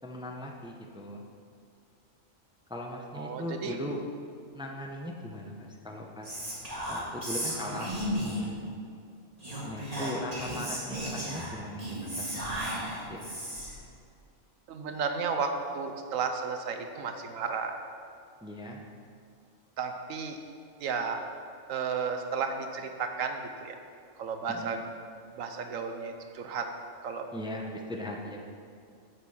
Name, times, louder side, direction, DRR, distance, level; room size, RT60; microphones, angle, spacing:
voice 1, 0.0-1.3 2.7-4.0 4.5-6.3 6.9-8.6 9.6-12.7 13.1-13.3 18.4-18.8 24.5-24.7 27.3-28.4, left 1 dB, 5° right, 0 dB, 0.6 m, -39 dB
voice 2, 3.1-3.8 10.0-10.1 14.7-17.8 19.8-20.4 20.8-21.2 21.7-23.8 24.2-24.8 25.4-26.7 27.0-27.3, right 5 dB, 85° right, 6 dB, 1.2 m, -33 dB
Whispering, 6.2-8.5 9.4-13.8, equal, 30° right, 2.0 m, -35 dB
8.2 x 7.3 x 5.6 m, 2.4 s
omnidirectional pair, 1.4 m